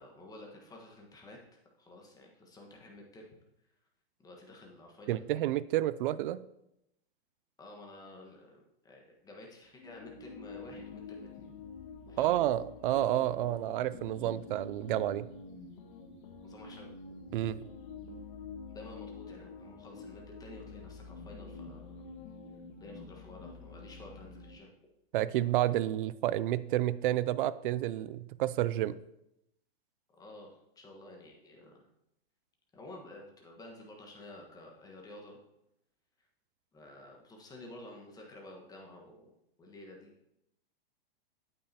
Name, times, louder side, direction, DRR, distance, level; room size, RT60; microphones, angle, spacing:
voice 1, 0.0-1.4 1.8-3.3 4.2-5.2 7.6-11.5 12.1-12.4 16.4-16.9 18.7-22.0 22.8-24.7 30.1-31.9 32.7-35.4 36.7-39.3 39.6-40.1, left 1 dB, 10° left, 0 dB, 1.4 m, -51 dB
voice 2, 5.1-6.4 12.2-15.3 17.3-17.6 25.1-29.0, right 13 dB, 55° right, 17 dB, 0.4 m, -30 dB
sound 1, 9.8-24.6, left 4 dB, 50° left, 1.4 m, -47 dB
8.7 x 8.6 x 2.8 m, 0.84 s
hypercardioid pair, 145°, 31 cm